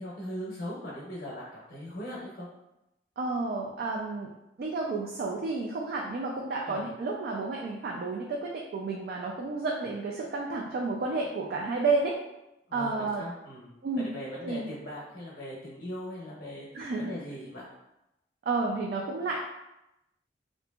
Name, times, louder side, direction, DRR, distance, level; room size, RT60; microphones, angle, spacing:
voice 1, 0.0-2.5 6.7-6.9 12.7-17.7, equal, 55° left, -6 dB, 0.7 m, -40 dB
voice 2, 3.2-4.3 4.6-12.2 12.7-13.2 13.8-14.1 14.4-14.7 16.7-17.1 18.5-19.4, right 3 dB, 60° right, -1 dB, 0.3 m, -31 dB
2.7 x 2.5 x 2.2 m, 0.90 s
head